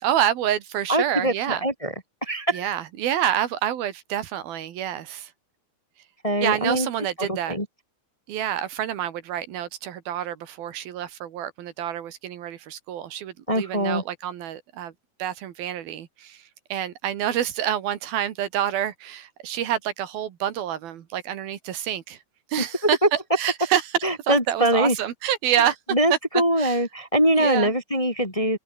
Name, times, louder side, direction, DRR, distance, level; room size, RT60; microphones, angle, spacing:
voice 1, 0.0-1.6 2.5-5.3 6.4-7.6 8.3-14.9 15.2-16.4 16.7-22.2 22.5-23.8 24.3-25.8 26.1-26.2 26.6-26.8 27.3-27.7, right 11 dB, 75° right, 3.5 m, -27 dB
voice 2, 0.9-1.9 2.2-2.7 6.2-6.9 7.2-7.7 13.5-14.0 22.8-23.1 24.0-25.0 25.6-28.6, right 1 dB, 10° left, 2.6 m, -23 dB
open air
omnidirectional pair, 4.3 m